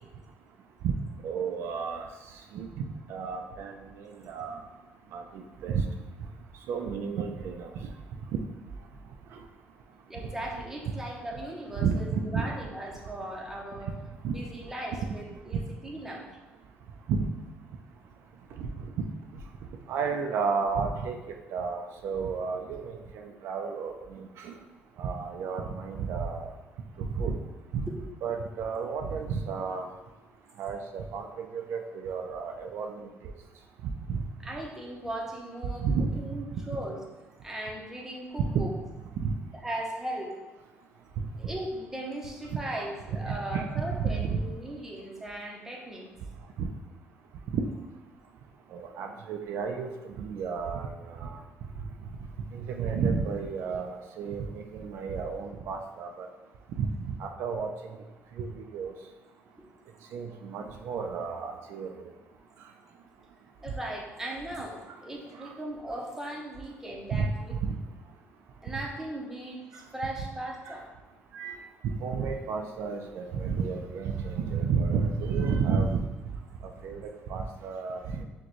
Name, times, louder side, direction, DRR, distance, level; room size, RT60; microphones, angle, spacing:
voice 1, 1.2-2.1 2.5-2.8 3.1-4.6 5.1-5.8 6.7-7.7 11.8-12.5 14.2-14.3 17.1-17.2 18.6-18.7 19.9-21.2 21.5-24.5 25.0-26.5 27.2-27.4 27.7-27.8 28.2-29.9 30.6-33.1 33.8-34.2 35.8-36.1 39.2-39.3 42.8-42.9 43.3-43.6 44.0-44.4 46.6-46.7 48.7-51.4 52.5-56.3 56.8-57.7 58.4-58.9 60.1-61.9 65.4-65.5 67.1-67.3 67.6-67.7 71.3-71.6 71.8-76.1 76.8-78.2, right 5 dB, 70° right, 4 dB, 0.4 m, -31 dB
voice 2, 10.1-13.9 14.3-16.2 27.9-28.0 34.4-35.8 36.1-37.0 37.4-38.7 39.5-40.3 41.4-46.1 59.6-59.7 63.6-67.8 68.6-70.9, right 1 dB, 10° right, -2 dB, 0.7 m, -38 dB
6.2 x 2.2 x 3.0 m, 1.2 s
cardioid pair, 140°, 4 cm